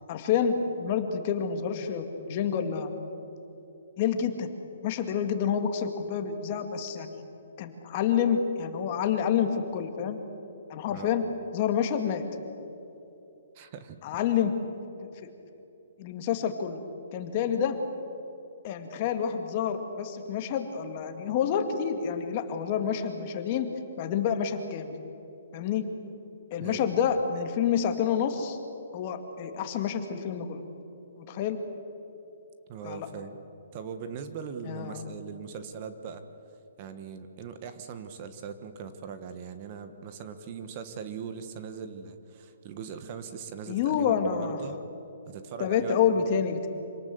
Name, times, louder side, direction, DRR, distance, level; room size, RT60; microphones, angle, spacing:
voice 1, 0.1-2.9 4.0-4.5 4.8-7.2 7.6-10.2 10.7-11.2 11.5-12.2 14.0-14.5 15.0-15.3 16.0-16.8 17.1-17.8 18.6-23.7 24.0-24.9 25.5-25.8 26.5-28.6 28.9-30.6 31.3-31.6 32.8-33.1 34.6-35.0 43.7-44.6 45.6-46.7, left 8 dB, 35° left, 6 dB, 2.0 m, -28 dB
voice 2, 10.9-11.2 13.5-14.2 26.6-26.9 32.7-33.4 33.7-36.2 36.8-44.8 45.3-46.2, right 6 dB, 35° right, 9 dB, 1.4 m, -40 dB
26.5 x 18.5 x 7.9 m, 2.8 s
hypercardioid pair, 160°, 0 cm